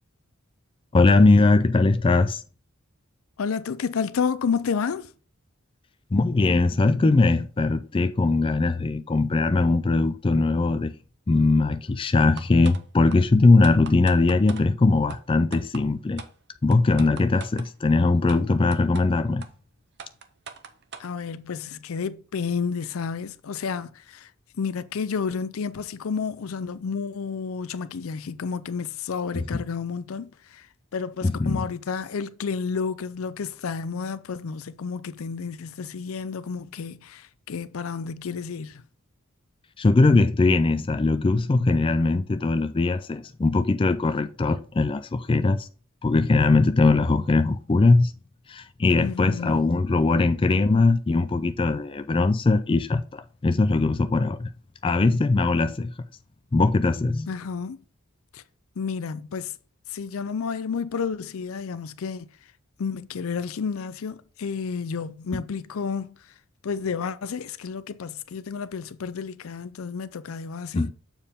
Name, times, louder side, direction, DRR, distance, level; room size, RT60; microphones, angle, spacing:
voice 1, 0.9-2.4 6.1-10.9 11.3-16.2 16.6-19.5 29.3-29.6 31.2-31.7 39.8-45.7 46.0-48.1 48.5-54.5 54.8-55.9 56.5-57.3 65.3-65.4 70.7-70.9, left 3 dB, 25° left, 0.4 m, -21 dB
voice 2, 3.4-5.1 21.0-24.3 24.6-30.7 30.9-38.8 49.0-49.6 57.3-57.8 58.3-58.4 58.8-59.5 59.9-62.3 62.8-66.2 66.6-70.9, left 5 dB, 80° left, 0.5 m, -31 dB
sound 1, 12.4-12.8 13.1-13.2 13.6-14.6 15.1-15.2 15.5-15.8 16.2-16.3 16.7-17.7 18.3-18.4 18.7-19.0 19.4-19.5 20.0-21.1, right 6 dB, 55° right, 0.7 m, -40 dB
7.1 x 4.5 x 3.5 m
head